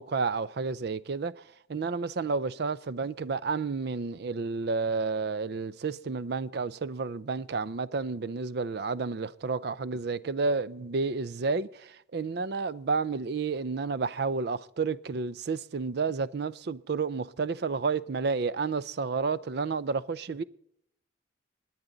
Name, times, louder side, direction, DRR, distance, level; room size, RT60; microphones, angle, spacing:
voice 1, 0.0-1.4 1.7-20.4, right 4 dB, 60° right, 0.5 m, -31 dB
22.5 x 9.5 x 3.9 m
head